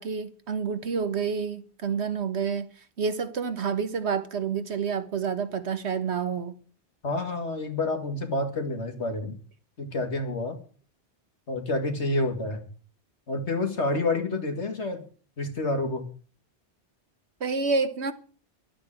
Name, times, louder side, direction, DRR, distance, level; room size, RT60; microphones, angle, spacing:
voice 1, 0.0-2.7 3.0-6.6 17.4-18.1, right 5 dB, 70° right, 1.6 m, -28 dB
voice 2, 7.0-9.3 9.8-10.6 11.5-12.7 13.3-15.0 15.4-16.1, left 2 dB, 75° left, 2.7 m, -28 dB
12.5 x 8.8 x 8.9 m
omnidirectional pair, 1.2 m